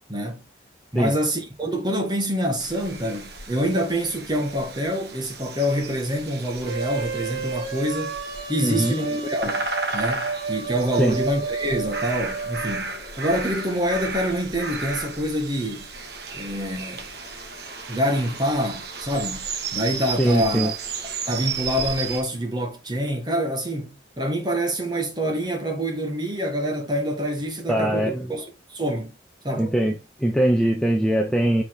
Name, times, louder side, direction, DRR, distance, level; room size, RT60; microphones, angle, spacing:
voice 1, 0.1-0.4 0.9-8.1 8.5-9.7 9.9-15.9 16.3-17.1 17.9-20.8 21.3-29.1 29.4-30.0, equal, 25° right, 1.6 m, -26 dB
sound 1, 2.6-22.2, right 4 dB, 60° right, 1.4 m, -34 dB
sound 2, 6.6-12.8, right 4 dB, 90° right, 1.5 m, -31 dB
voice 2, 8.6-8.9 11.0-11.2 20.2-20.7 27.7-28.4 29.6-31.6, right 1 dB, 5° left, 0.7 m, -22 dB
7.2 x 4.3 x 3.6 m
head